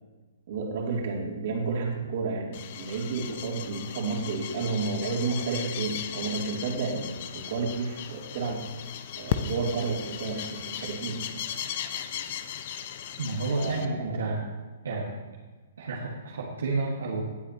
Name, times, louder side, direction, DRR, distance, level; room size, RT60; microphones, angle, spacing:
voice 1, 0.5-8.6 9.2-11.4 13.5-14.2, right 4 dB, 50° right, -1 dB, 3.0 m, -31 dB
sound 1, 2.5-13.9, left 9 dB, 45° left, 0.7 m, -37 dB
voice 2, 13.2-14.4 14.8-15.2 15.8-17.2, right 3 dB, 70° right, -4 dB, 1.8 m, -30 dB
18.5 x 8.0 x 3.0 m, 1.3 s
figure-of-eight pair, 120°, 0 cm